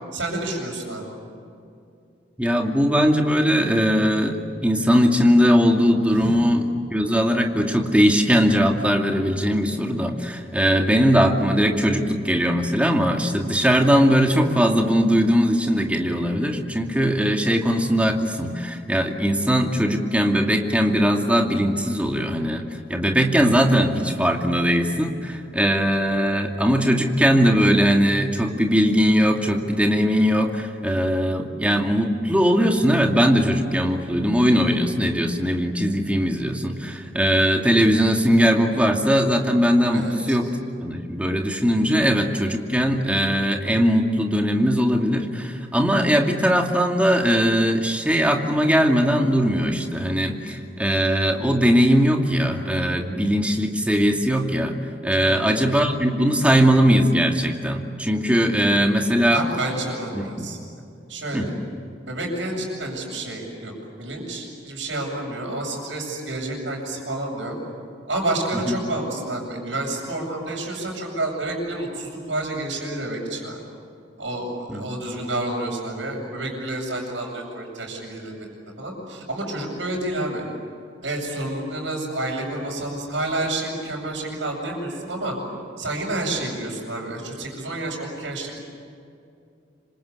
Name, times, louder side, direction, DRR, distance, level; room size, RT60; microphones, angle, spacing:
voice 1, 0.1-1.1 6.1-6.4 39.9-40.4 55.2-55.4 59.3-60.6 61.1-61.4 62.1-63.7 64.0-67.6 68.1-73.6 74.2-78.5 78.8-80.4 81.0-85.4 85.8-88.6, right 2 dB, 85° right, -8 dB, 6.9 m, -29 dB
voice 2, 2.4-40.5 40.8-54.8 55.0-59.4 60.1-60.5 61.3-61.5 68.7-68.8 74.7-74.9, equal, 5° right, 2 dB, 2.5 m, -20 dB
27.0 x 26.0 x 8.4 m, 2.5 s
head